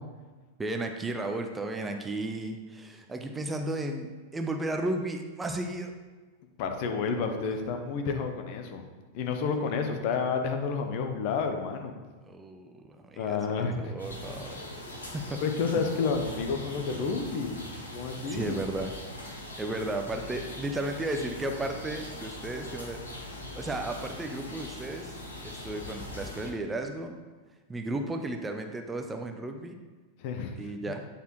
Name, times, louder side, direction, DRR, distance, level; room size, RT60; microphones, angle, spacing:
voice 1, 0.6-5.9 12.3-14.7 15.1-15.4 18.3-19.0 19.6-23.0 23.5-25.2 25.4-27.2 27.7-29.8 30.6-31.1, right 2 dB, 10° right, 4 dB, 0.5 m, -34 dB
voice 2, 6.6-8.8 9.1-12.0 13.2-13.9 15.4-17.6 17.9-18.5 30.2-30.7, left 5 dB, 45° left, 5 dB, 0.7 m, -30 dB
sound 1, 14.0-26.5, left 1 dB, 75° left, 1.0 m, -41 dB
9.2 x 4.2 x 3.0 m, 1.3 s
figure-of-eight pair, 90°, 0 cm